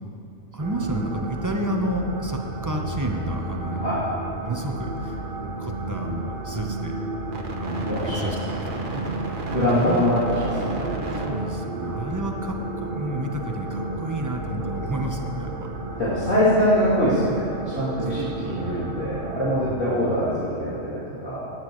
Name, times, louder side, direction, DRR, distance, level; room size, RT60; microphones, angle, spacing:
voice 1, 0.5-3.8 4.4-5.2 5.6-6.9 7.5-10.1 11.2-15.7 18.4-18.8 19.7-20.2, right 1 dB, 15° right, 2 dB, 0.9 m, -31 dB
sound 1, 0.6-19.7, right 2 dB, 45° right, 1.2 m, -32 dB
voice 2, 7.8-9.1 9.5-11.3 16.0-21.4, equal, 80° left, -12 dB, 3.4 m, -24 dB
18.5 x 9.4 x 3.2 m, 2.8 s
omnidirectional pair, 1.3 m